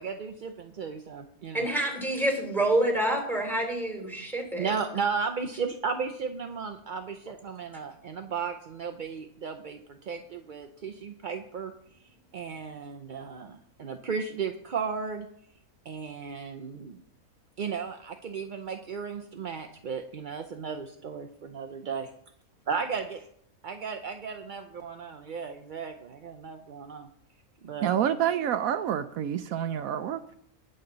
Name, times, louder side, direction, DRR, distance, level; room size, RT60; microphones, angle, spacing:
voice 1, 0.0-1.7 4.6-11.7 12.3-15.3 15.8-17.0 17.6-22.1 22.7-23.2 23.6-27.1 27.6-28.0, right 5 dB, 50° right, 6 dB, 0.6 m, -35 dB
voice 2, 1.5-4.7, right 1 dB, ahead, 1 dB, 3.3 m, -27 dB
voice 3, 27.8-30.2, right 10 dB, 75° right, 10 dB, 1.0 m, -27 dB
20.0 x 6.7 x 3.9 m, 0.71 s
omnidirectional pair, 1.5 m